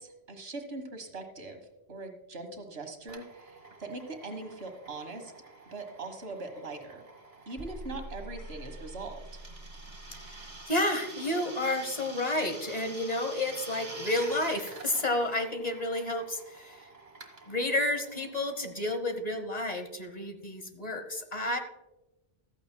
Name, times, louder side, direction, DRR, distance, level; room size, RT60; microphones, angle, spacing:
voice 1, 0.0-1.6 1.9-5.3 5.7-7.0 7.5-9.4, right 3 dB, 70° right, 5 dB, 1.7 m, -41 dB
Drill, 3.1-19.4, right 2 dB, 40° right, 1.6 m, -48 dB
sound 1, 7.5-10.6, right 1 dB, 15° left, 1.9 m, -45 dB
voice 2, 10.7-16.9 17.5-21.6, left 1 dB, 40° left, 7 dB, 1.1 m, -31 dB
14.5 x 13.5 x 2.2 m, 1.0 s
omnidirectional pair, 1.1 m